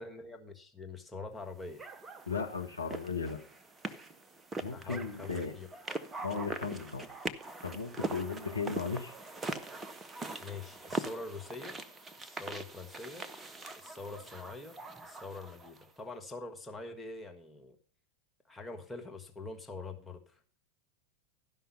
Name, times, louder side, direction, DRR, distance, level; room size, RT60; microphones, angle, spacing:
voice 1, 0.0-1.8 4.7-5.7 10.4-11.7 12.2-13.3 13.7-14.8 15.0-17.7 18.5-20.2, left 3 dB, 5° left, 2 dB, 1.5 m, -44 dB
sound 1, 1.8-15.9, right 3 dB, 15° right, 0.8 m, -42 dB
voice 2, 2.3-3.4 4.6-5.5 6.2-7.1 7.6-9.1, left 4 dB, 80° left, 4 dB, 1.4 m, -36 dB
12.5 x 5.6 x 5.7 m, 0.43 s
figure-of-eight pair, 90°, 0 cm